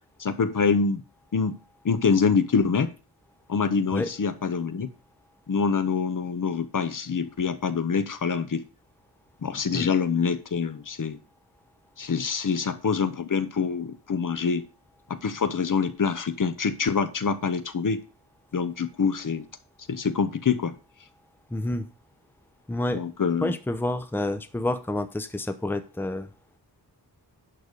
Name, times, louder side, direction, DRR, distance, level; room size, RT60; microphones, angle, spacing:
voice 1, 0.2-1.0 1.3-1.6 1.8-2.9 3.5-4.9 5.5-8.6 9.4-11.2 12.0-14.7 15.1-18.0 18.5-19.5 19.9-20.7 22.9-23.6, left 5 dB, 55° left, 11 dB, 0.9 m, -25 dB
voice 2, 21.5-21.8 22.7-23.0 23.4-26.3, left 1 dB, 5° left, 10 dB, 0.7 m, -28 dB
11.0 x 4.0 x 6.7 m, 0.34 s
wide cardioid pair, 120°, 39 cm